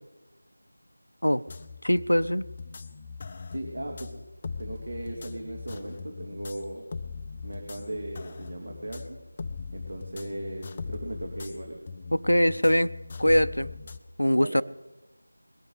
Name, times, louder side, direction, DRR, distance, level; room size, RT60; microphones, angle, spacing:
sound 1, 1.5-14.0, left 4 dB, 25° left, 0.5 m, -40 dB
voice 1, 1.8-2.4 12.1-12.9 13.2-13.7 14.2-14.6, equal, 90° left, 13 dB, 0.6 m, -22 dB
voice 2, 3.5-4.1 4.4-6.8 7.4-9.2 9.7-11.8 14.4-14.6, right 1 dB, 50° right, 0 dB, 2.7 m, -37 dB
21.0 x 12.5 x 5.0 m, 1.0 s
figure-of-eight pair, 170°, 0 cm